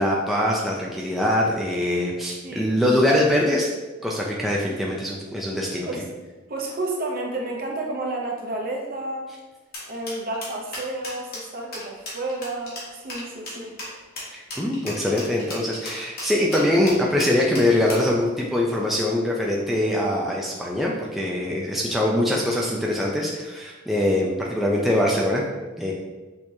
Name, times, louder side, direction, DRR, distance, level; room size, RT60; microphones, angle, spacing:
voice 1, 0.0-3.7 4.0-5.9 14.3-25.4 25.8-25.9, left 1 dB, ahead, -3 dB, 0.4 m, -23 dB
voice 2, 2.4-2.7 5.9-6.1 6.5-9.3 9.9-13.7, right 2 dB, 45° right, -1 dB, 0.8 m, -31 dB
sound 1, 9.7-18.1, left 1 dB, 50° left, 1.5 m, -36 dB
6.4 x 2.9 x 2.7 m, 1.3 s
head